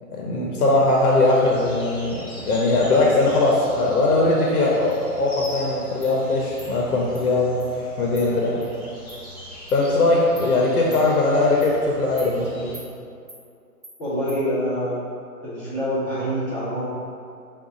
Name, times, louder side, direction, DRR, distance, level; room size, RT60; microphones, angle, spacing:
voice 1, 0.1-8.6 9.7-12.7, left 2 dB, 65° left, -2 dB, 0.7 m, -20 dB
sound 1, 1.0-12.8, equal, 25° left, 1.1 m, -41 dB
Insect, 4.9-5.0 5.4-5.5 6.0-6.1 6.6-6.7 7.1-7.2 7.6-7.7 8.1-8.3 8.6-8.7 9.1-9.2 9.7-9.8 10.4-10.5 10.9-11.0 11.6-11.7 12.2-12.3 12.7-12.9 13.3-13.4 13.8-13.9 14.3-14.4, right 1 dB, 25° right, 0.8 m, -43 dB
voice 2, 14.0-15.0 15.4-16.9, equal, 10° left, -17 dB, 0.7 m, -25 dB
3.9 x 2.4 x 3.6 m, 2.4 s
hypercardioid pair, 170°, 47 cm